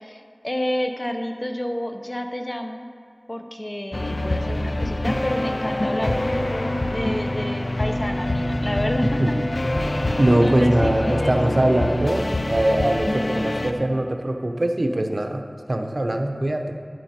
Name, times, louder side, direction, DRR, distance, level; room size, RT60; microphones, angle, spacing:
voice 1, 0.0-2.9 3.3-9.2 9.8-11.4, left 1 dB, 40° left, 4 dB, 0.9 m, -30 dB
sound 1, 3.9-13.7, left 1 dB, 65° left, 0.6 m, -25 dB
voice 2, 10.2-16.8, right 1 dB, 60° right, 4 dB, 0.9 m, -22 dB
11.5 x 9.4 x 4.4 m, 2.4 s
wide cardioid pair, 45°, 0 cm